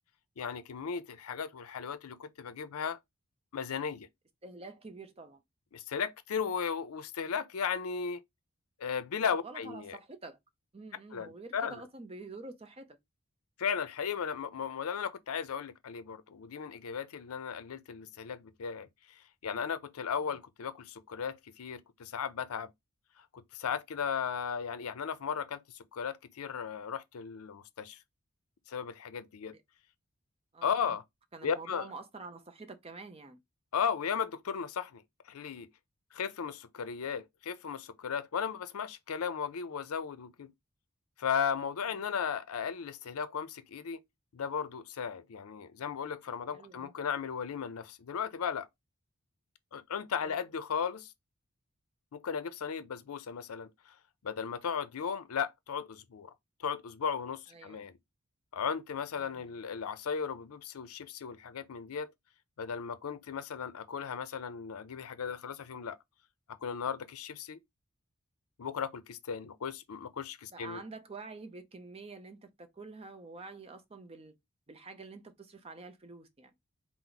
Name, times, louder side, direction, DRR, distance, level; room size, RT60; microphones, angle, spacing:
voice 1, 0.4-3.0 3.5-4.1 5.7-8.2 8.8-10.0 11.1-11.8 13.6-22.7 23.3-28.0 28.7-29.5 30.6-31.0 31.4-31.9 33.7-35.0 35.3-35.7 36.1-40.5 41.2-44.0 44.3-48.7 49.7-51.1 52.1-53.7 54.2-56.3 56.6-57.9 58.5-62.1 62.6-66.0 66.5-67.6 68.6-70.8, left 6 dB, 80° left, 0.5 m, -36 dB
voice 2, 4.4-5.4 9.2-10.4 10.7-13.0 29.5-29.6 30.5-30.9 31.3-33.4 46.5-46.9 50.2-50.4 57.5-57.9 59.2-59.5 70.5-74.4 74.7-76.5, right 3 dB, 25° right, 0.6 m, -47 dB
4.4 x 2.1 x 3.9 m
head